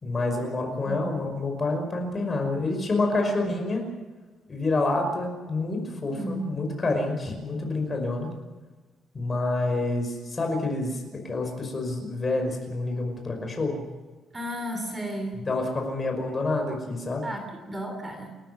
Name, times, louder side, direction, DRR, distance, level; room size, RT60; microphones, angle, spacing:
voice 1, 0.0-3.8 4.5-8.3 9.1-13.8 15.5-17.2, left 2 dB, 25° left, 3 dB, 5.5 m, -28 dB
voice 2, 6.1-6.5 14.3-15.4 17.2-18.3, equal, 15° right, 5 dB, 3.0 m, -34 dB
29.5 x 14.0 x 7.8 m, 1.3 s
cardioid pair, 175°, 0 cm